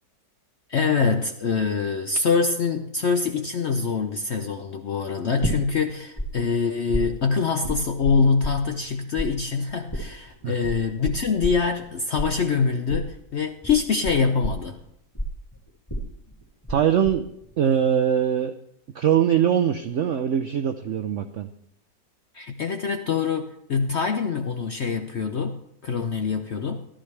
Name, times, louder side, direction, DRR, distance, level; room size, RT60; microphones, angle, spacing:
voice 1, 0.7-14.8 22.3-26.9, left 5 dB, 70° left, 7 dB, 0.6 m, -24 dB
sound 1, 5.4-6.3 6.5-8.9 9.2-16.8 17.0-17.6, equal, 10° left, 2.6 m, -30 dB
voice 2, 16.7-17.2 17.6-18.5 19.0-21.5, right 9 dB, 80° right, 8 dB, 0.6 m, -22 dB
14.0 x 12.5 x 3.3 m, 0.77 s
omnidirectional pair, 1.9 m